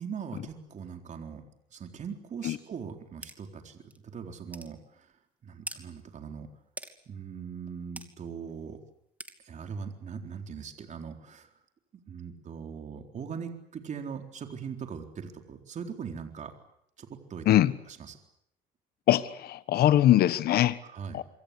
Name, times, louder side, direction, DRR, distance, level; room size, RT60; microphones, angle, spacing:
voice 1, 0.0-6.5 7.1-8.8 9.4-11.5 11.9-16.6 17.0-17.6 17.9-18.2 20.8-21.2, right 6 dB, 45° right, 4.1 m, -41 dB
sound 1, 3.2-3.4 3.9-4.0 4.5-4.7 5.7-5.8 6.8-6.9 8.0-8.1 9.2-9.4, right 1 dB, 10° right, 2.8 m, -41 dB
voice 2, 19.1-20.8 21.1-21.2, left 13 dB, 65° left, 1.3 m, -22 dB
26.5 x 24.0 x 8.5 m
cardioid pair, 110°, 17 cm